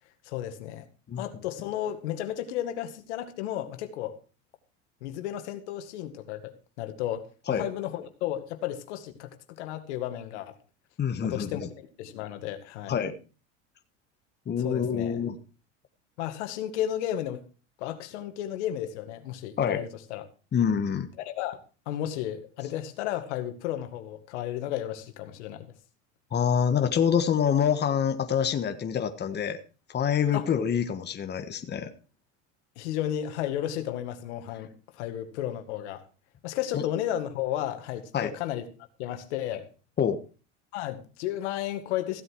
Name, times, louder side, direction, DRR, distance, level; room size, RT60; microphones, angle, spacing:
voice 1, 0.2-0.8 1.2-4.2 5.0-10.6 11.2-11.6 12.0-12.9 14.6-15.2 16.2-17.4 17.8-20.2 21.2-21.6 21.9-25.7 30.3-30.5 32.8-36.0 36.4-38.6 39.0-39.7 40.7-42.2, left 12 dB, 80° left, 2.0 m, -33 dB
voice 2, 11.0-11.7 12.9-13.2 14.5-15.4 19.6-19.8 20.5-21.1 26.3-29.6 29.9-31.9 36.7-36.8 38.1-38.3 40.0-40.2, left 8 dB, 30° left, 1.5 m, -26 dB
15.5 x 8.0 x 4.8 m
supercardioid pair, 100°, 34 cm